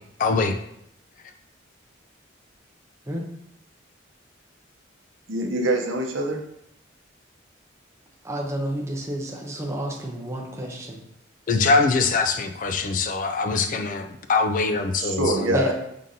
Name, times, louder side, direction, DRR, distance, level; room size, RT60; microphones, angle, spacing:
voice 1, 0.2-0.5 11.5-15.7, left 4 dB, 40° left, 7 dB, 0.3 m, -23 dB
voice 2, 5.3-6.4 15.0-15.7, right 1 dB, 75° right, 2 dB, 0.7 m, -24 dB
voice 3, 8.2-11.0 15.5-15.7, right 1 dB, 15° right, 0 dB, 0.7 m, -30 dB
5.0 x 3.7 x 2.7 m, 0.77 s
head